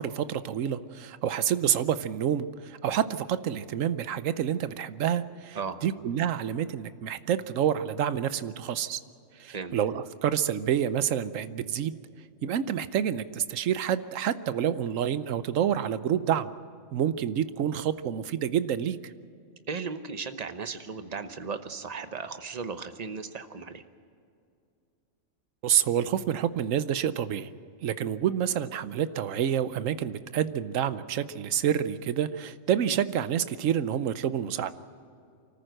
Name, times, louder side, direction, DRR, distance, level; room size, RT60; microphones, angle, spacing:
voice 1, 0.0-9.0 9.4-11.9 12.4-16.5 16.9-19.0 25.6-27.5 27.8-34.7, right 9 dB, 85° right, 13 dB, 1.1 m, -28 dB
voice 2, 19.7-23.8, right 5 dB, 35° right, 9 dB, 1.0 m, -36 dB
25.0 x 14.5 x 7.8 m, 2.4 s
omnidirectional pair, 1.3 m